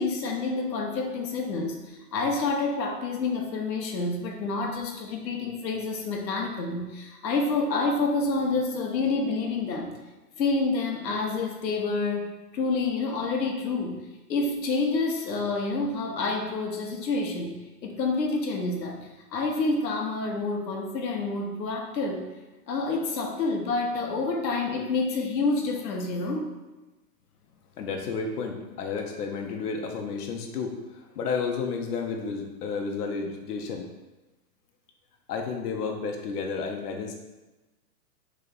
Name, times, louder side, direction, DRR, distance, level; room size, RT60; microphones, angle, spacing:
voice 1, 0.0-9.9 10.4-14.0 14.3-17.5 17.8-19.0 19.3-22.2 22.7-26.5, left 3 dB, 90° left, 1 dB, 1.1 m, -28 dB
voice 2, 27.8-33.9 35.3-37.1, left 5 dB, 70° left, 3 dB, 0.8 m, -32 dB
3.4 x 3.2 x 3.9 m, 1.1 s
hypercardioid pair, 165°, 49 cm